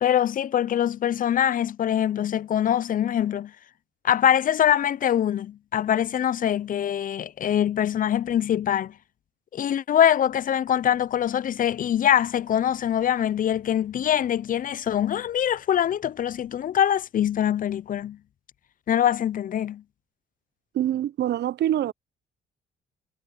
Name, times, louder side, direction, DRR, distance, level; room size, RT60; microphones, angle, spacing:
voice 1, 0.0-3.5 4.0-8.9 9.5-18.2 18.9-19.8, left 10 dB, 45° left, 0.4 m, -23 dB
voice 2, 20.7-21.9, right 12 dB, 60° right, 0.6 m, -25 dB
cardioid pair, 90°, 20 cm